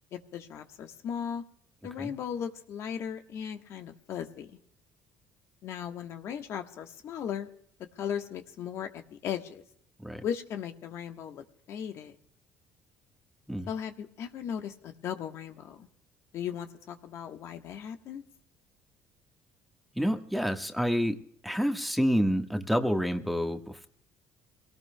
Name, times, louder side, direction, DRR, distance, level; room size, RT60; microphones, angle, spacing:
voice 1, 0.1-1.4 1.8-4.6 5.6-7.5 8.0-9.6 10.2-12.1 13.7-15.9 16.3-18.2, left 8 dB, 65° left, 6 dB, 1.4 m, -37 dB
voice 2, 19.9-21.2 21.4-23.9, equal, ahead, 5 dB, 1.5 m, -28 dB
25.0 x 18.0 x 2.3 m, 0.65 s
supercardioid pair, 85°, 5 cm